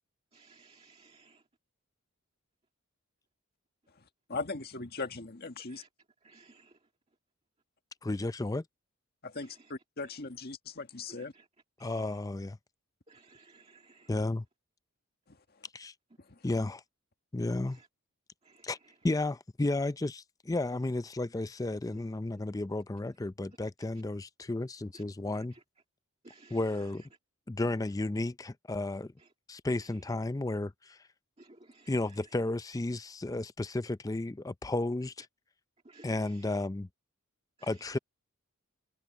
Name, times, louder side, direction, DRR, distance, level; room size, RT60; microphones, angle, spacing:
voice 1, 0.3-1.4 5.7-5.9 6.2-6.7 11.3-11.4 11.8-12.0 13.1-14.1 18.5-18.6 24.9-25.1 26.2-26.6 31.4-31.9 35.9-36.1 37.6-37.7, right 3 dB, 30° right, 2.0 m, -58 dB
voice 2, 4.3-5.8 9.2-11.3, left 3 dB, 45° left, 1.8 m, -39 dB
voice 3, 8.0-8.6 11.8-12.6 14.1-14.4 15.7-15.9 16.4-16.8 17.3-17.8 18.6-18.8 19.0-25.5 26.5-27.0 27.5-29.1 29.5-31.0 31.9-35.3 36.0-36.9 37.7-38.0, left 2 dB, 15° left, 0.4 m, -33 dB
head